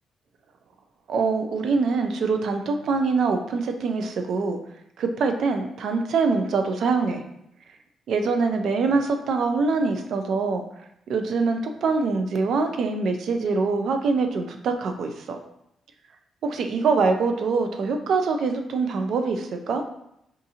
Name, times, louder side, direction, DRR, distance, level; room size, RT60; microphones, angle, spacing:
voice 1, 1.1-4.6 5.0-7.2 8.1-10.6 11.1-15.4 16.4-19.8, right 4 dB, 70° right, 6 dB, 0.4 m, -24 dB
3.7 x 2.5 x 2.8 m, 0.79 s
cardioid pair, 100°, 0 cm